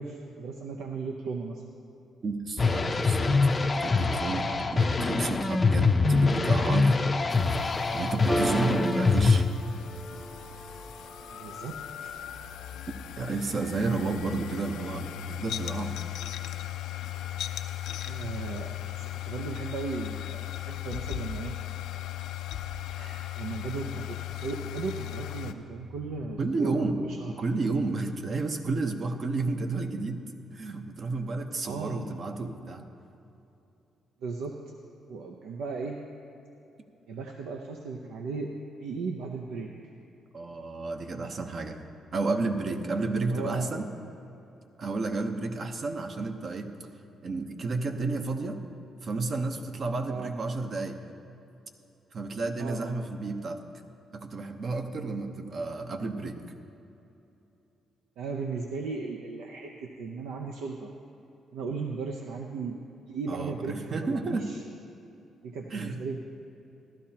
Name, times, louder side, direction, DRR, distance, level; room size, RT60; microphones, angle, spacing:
voice 1, 0.0-1.6 11.3-12.3 18.0-21.6 22.9-27.3 27.6-27.7 31.6-32.0 34.2-34.6 35.1-36.0 37.1-39.7 43.2-43.7 50.1-50.3 52.6-53.0 58.2-60.9 61.5-62.8 63.1-64.6 65.4-66.2, right 4 dB, 85° right, 2 dB, 0.6 m, -36 dB
voice 2, 2.2-3.5 3.8-7.0 7.9-9.4 13.2-16.0 26.4-27.0 27.3-30.2 30.5-32.9 40.3-41.8 42.1-43.9 44.8-46.7 47.2-48.6 49.0-51.0 52.1-53.6 54.1-56.4 63.3-64.5 65.7-66.0, right 3 dB, 50° right, 6 dB, 0.8 m, -31 dB
sound 1, 2.6-9.4, left 4 dB, 30° left, 0.5 m, -24 dB
sound 2, 7.3-25.5, left 12 dB, 85° left, 0.4 m, -38 dB
Piano, 8.3-15.2, equal, 5° right, 0.9 m, -37 dB
15.0 x 12.0 x 2.9 m, 2.9 s
cardioid pair, 90°, 0 cm